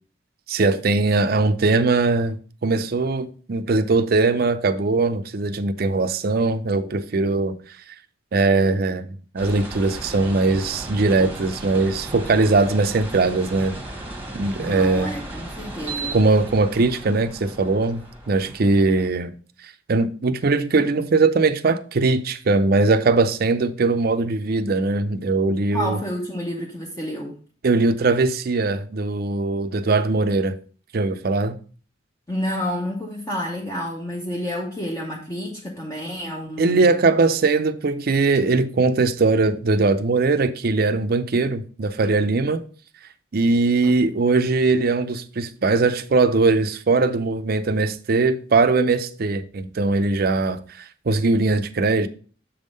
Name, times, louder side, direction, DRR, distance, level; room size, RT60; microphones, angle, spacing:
voice 1, 0.5-7.5 8.3-13.8 14.3-15.1 16.1-19.3 19.9-26.0 27.6-30.6 30.9-31.6 36.6-42.6 43.3-52.1, right 3 dB, 50° right, 0.5 m, -20 dB
sound 1, 9.4-19.1, right 2 dB, 10° right, 1.2 m, -36 dB
voice 2, 14.6-16.2 25.7-27.4 32.3-36.9, equal, 15° left, 0.8 m, -29 dB
7.1 x 3.6 x 5.2 m
head